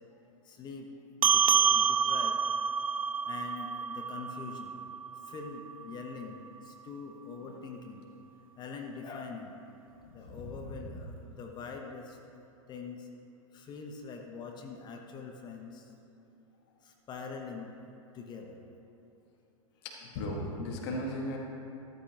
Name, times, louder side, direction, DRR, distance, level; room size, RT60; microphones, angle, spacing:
voice 1, 0.4-0.9 1.2-2.4 3.2-4.8 5.2-8.1 8.6-9.6 10.1-12.2 12.7-13.1 13.5-16.1 16.8-17.8 18.1-18.6, left 5 dB, 25° left, 2 dB, 1.1 m, -44 dB
sound 1, 1.2-6.0, right 6 dB, 80° right, 0.4 m, -28 dB
voice 2, 10.2-11.0 19.8-21.4, left 1 dB, 50° left, -1 dB, 1.9 m, -37 dB
14.0 x 13.0 x 3.0 m, 2.9 s
figure-of-eight pair, 100°, 17 cm